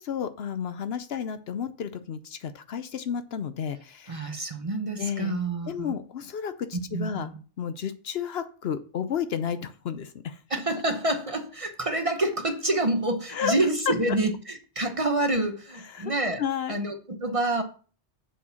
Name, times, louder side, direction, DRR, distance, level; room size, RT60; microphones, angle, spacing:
voice 1, 0.0-4.3 5.0-5.3 5.7-7.3 7.6-10.4 13.3-13.6 15.9-16.1 16.4-16.7, left 8 dB, 65° left, 11 dB, 0.9 m, -32 dB
voice 2, 4.1-5.9 6.9-7.4 10.5-16.4 16.7-17.6, right 2 dB, 30° right, 6 dB, 1.0 m, -27 dB
7.4 x 4.4 x 6.9 m, 0.39 s
omnidirectional pair, 1.2 m